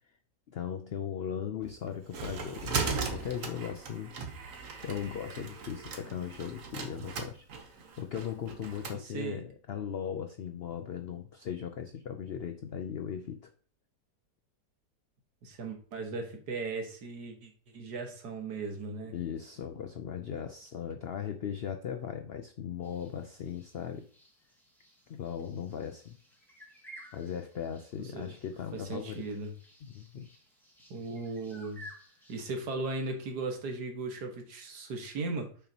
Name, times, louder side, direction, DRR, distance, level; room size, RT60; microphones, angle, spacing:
voice 1, 0.5-4.1 4.8-7.5 8.0-13.5 19.1-24.1 25.1-26.2 27.1-29.3 29.9-30.3, left 8 dB, 90° left, 8 dB, 0.5 m, -38 dB
sound 1, 1.6-9.0, right 5 dB, 55° right, 1.3 m, -38 dB
voice 2, 8.9-9.4 15.4-19.1 28.1-28.3 28.7-29.5 30.9-31.9 32.3-35.5, right 3 dB, 75° right, 4 dB, 1.9 m, -37 dB
sound 2, 22.8-32.5, equal, ahead, 2.0 m, -55 dB
7.0 x 5.9 x 2.8 m, 0.44 s
omnidirectional pair, 1.7 m